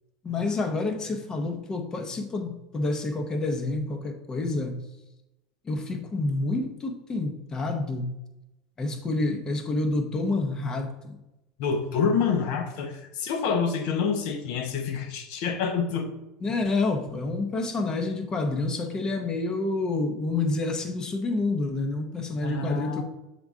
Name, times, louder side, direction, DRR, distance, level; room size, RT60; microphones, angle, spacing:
voice 1, 0.2-4.9 5.6-8.2 8.8-11.2 16.4-23.0, left 2 dB, 25° left, 6 dB, 0.8 m, -28 dB
voice 2, 11.6-16.1 22.4-23.0, left 5 dB, 65° left, 6 dB, 0.9 m, -27 dB
7.0 x 3.8 x 3.6 m, 0.96 s
supercardioid pair, 120°, 3 cm